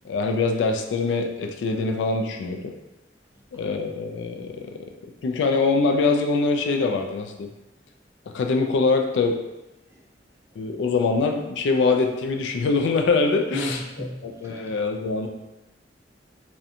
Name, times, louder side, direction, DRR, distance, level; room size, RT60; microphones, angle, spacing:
voice 1, 0.0-2.7 3.5-4.7 5.2-7.5 8.3-9.4 10.6-15.3, left 4 dB, 80° left, 4 dB, 0.3 m, -23 dB
voice 2, 13.5-14.7, equal, 15° right, -2 dB, 0.4 m, -34 dB
2.8 x 2.1 x 2.5 m, 1.0 s
head